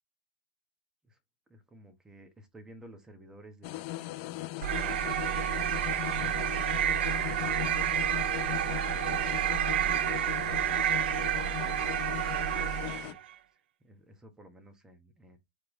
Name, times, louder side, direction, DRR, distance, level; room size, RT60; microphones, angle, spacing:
voice 1, 1.5-7.8 8.4-12.0 12.8-13.2 13.8-15.4, right 1 dB, 10° right, 1.3 m, -55 dB
sound 1, 3.6-13.1, left 17 dB, 45° left, 0.5 m, -38 dB
sound 2, 4.6-13.2, right 12 dB, 65° right, 0.4 m, -30 dB
4.6 x 3.4 x 3.1 m
hypercardioid pair, 120°, 6 cm